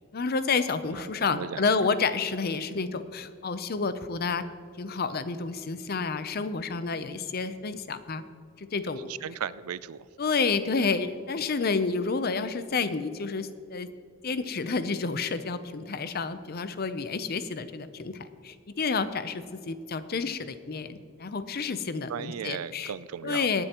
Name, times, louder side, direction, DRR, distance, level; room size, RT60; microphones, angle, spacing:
voice 1, 0.1-4.4 4.8-8.2 8.6-9.1 10.2-13.9 14.2-18.2 18.4-22.9 23.2-23.6, left 4 dB, 45° left, 12 dB, 0.6 m, -29 dB
voice 2, 0.9-1.6 9.1-10.1 22.1-23.5, right 8 dB, 90° right, 18 dB, 0.4 m, -36 dB
19.0 x 9.8 x 3.0 m, 2.2 s
head